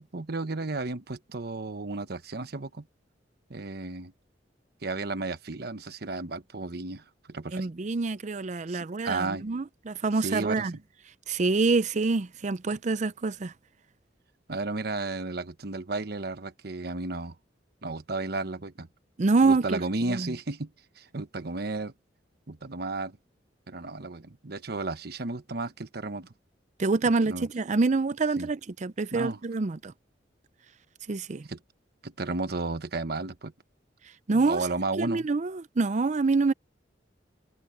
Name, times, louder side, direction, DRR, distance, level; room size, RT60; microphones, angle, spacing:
voice 1, 0.0-2.9 3.5-4.1 4.8-7.7 8.7-9.5 10.2-10.7 14.5-17.3 17.8-18.9 19.4-20.7 21.0-21.9 22.5-23.2 23.7-26.3 27.3-27.5 28.4-28.5 29.1-29.4 31.5-31.6 32.0-33.5 34.3-35.3, right 3 dB, 60° right, 1.1 m, -33 dB
voice 2, 7.5-10.8 11.3-13.5 19.2-19.8 20.1-20.3 26.8-29.9 31.1-31.4 34.3-34.7 35.0-36.5, right 3 dB, 40° right, 0.5 m, -26 dB
head